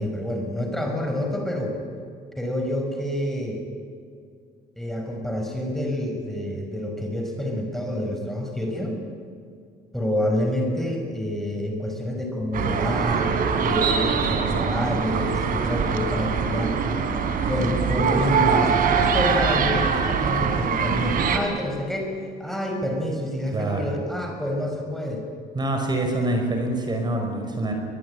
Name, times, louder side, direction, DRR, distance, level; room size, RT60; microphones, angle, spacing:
voice 1, 0.0-1.8 2.4-3.6 4.8-9.0 9.9-13.3 13.6-16.8 17.5-25.3, left 1 dB, ahead, 2 dB, 5.6 m, -28 dB
sound 1, 12.5-21.4, right 6 dB, 55° right, 3.5 m, -23 dB
voice 2, 23.5-23.9 25.6-27.7, right 1 dB, 25° right, 3 dB, 5.5 m, -25 dB
24.0 x 20.0 x 10.0 m, 2.3 s
cardioid pair, 110°, 17 cm